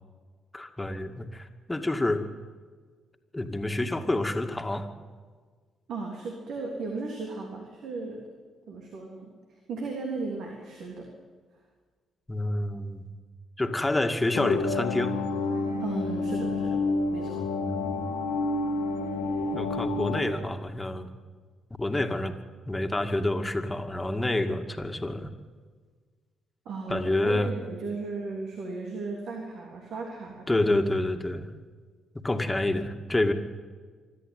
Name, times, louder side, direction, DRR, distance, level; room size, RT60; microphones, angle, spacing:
voice 1, 0.5-2.2 3.3-4.9 12.3-13.1 13.6-15.1 17.4-18.1 19.5-21.1 21.8-22.3 22.7-25.4 26.9-27.5 30.5-31.5 32.1-33.3, left 1 dB, 15° left, 6 dB, 2.3 m, -28 dB
voice 2, 5.9-8.3 8.7-11.1 15.6-16.8 17.1-17.5 26.7-30.5, right 3 dB, 65° right, 0 dB, 3.3 m, -36 dB
sound 1, 14.3-20.2, left 3 dB, 85° left, 1.7 m, -29 dB
25.0 x 13.0 x 9.4 m, 1.5 s
hypercardioid pair, 45°, 0 cm